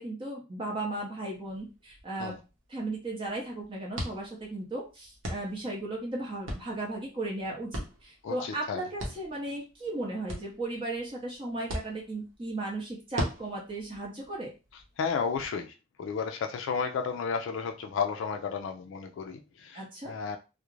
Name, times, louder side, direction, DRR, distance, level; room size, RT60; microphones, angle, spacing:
voice 1, 0.0-2.3 2.7-14.5 19.7-20.1, right 2 dB, 25° right, -2 dB, 0.6 m, -36 dB
sound 1, 1.3-15.5, equal, 80° right, 0.8 m, -42 dB
voice 2, 8.2-8.8 15.0-20.4, left 6 dB, 70° left, 5 dB, 0.3 m, -33 dB
2.4 x 2.0 x 3.0 m, 0.30 s
head